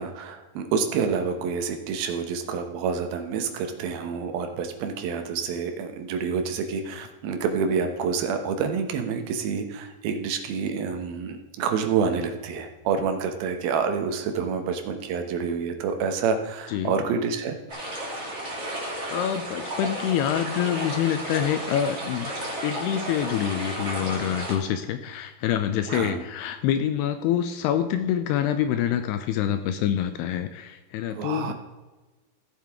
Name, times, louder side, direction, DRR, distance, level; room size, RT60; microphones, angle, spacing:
voice 1, 0.0-17.6 25.9-26.2 31.1-31.5, right 6 dB, 70° right, 6 dB, 2.6 m, -28 dB
sound 1, 17.7-24.6, right 1 dB, 20° right, 2.3 m, -33 dB
voice 2, 19.1-22.3 22.6-31.5, left 10 dB, 85° left, 9 dB, 2.5 m, -26 dB
15.5 x 7.4 x 3.6 m, 1.2 s
omnidirectional pair, 4.9 m